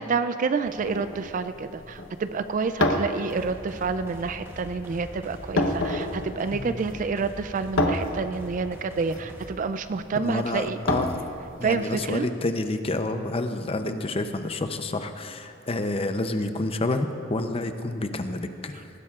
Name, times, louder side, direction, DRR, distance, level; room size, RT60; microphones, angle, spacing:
voice 1, 0.0-10.8 11.6-12.3, right 4 dB, 40° right, 10 dB, 0.3 m, -28 dB
sound 1, 0.7-12.0, left 1 dB, 75° left, 1.0 m, -31 dB
sound 2, 3.3-9.5, equal, 10° right, 1.1 m, -43 dB
voice 2, 6.5-6.8 10.1-11.2 11.6-18.8, left 2 dB, 30° left, 8 dB, 0.6 m, -29 dB
19.5 x 15.5 x 2.4 m, 2.5 s
head